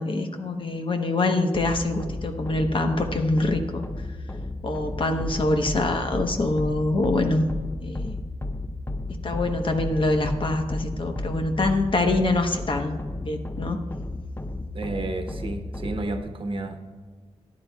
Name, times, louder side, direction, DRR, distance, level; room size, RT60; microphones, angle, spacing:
voice 1, 0.0-3.9 4.6-7.5 7.8-8.1 9.2-13.0 13.2-13.8, left 2 dB, 45° left, 5 dB, 1.0 m, -25 dB
sound 1, 1.5-16.2, left 2 dB, 20° left, 0.6 m, -33 dB
voice 2, 14.7-16.8, right 2 dB, 50° right, 5 dB, 1.1 m, -31 dB
14.0 x 10.5 x 2.3 m, 1.5 s
wide cardioid pair, 90°, 12 cm